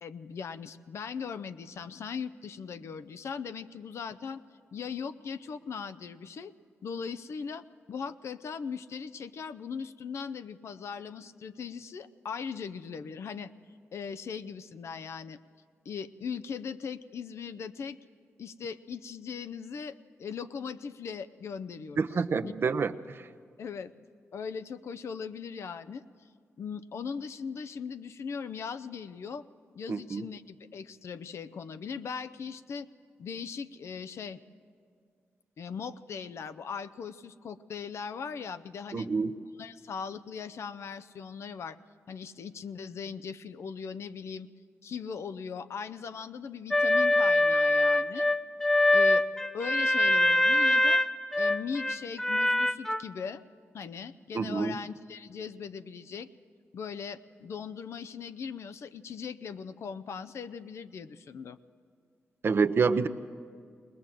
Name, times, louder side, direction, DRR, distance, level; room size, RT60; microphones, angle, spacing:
voice 1, 0.0-4.4 4.7-6.5 6.8-13.5 13.9-15.4 15.8-18.0 18.4-22.1 22.4-22.7 23.6-23.9 24.3-26.0 26.6-29.4 29.7-32.9 33.2-34.4 35.6-39.1 39.6-41.8 42.1-44.5 44.8-48.3 48.9-49.3 49.5-51.0 51.4-53.4 53.7-56.3 56.7-61.6, left 6 dB, 65° left, 13 dB, 0.6 m, -39 dB
voice 2, 22.0-22.9 23.2-23.3 29.9-30.3 38.9-39.4 54.3-54.8 62.4-63.1, right 5 dB, 50° right, 11 dB, 0.7 m, -27 dB
sound 1, 46.7-53.0, left 1 dB, 10° left, 0.6 m, -24 dB
20.5 x 19.5 x 7.5 m, 2.1 s
cardioid pair, 65°, 5 cm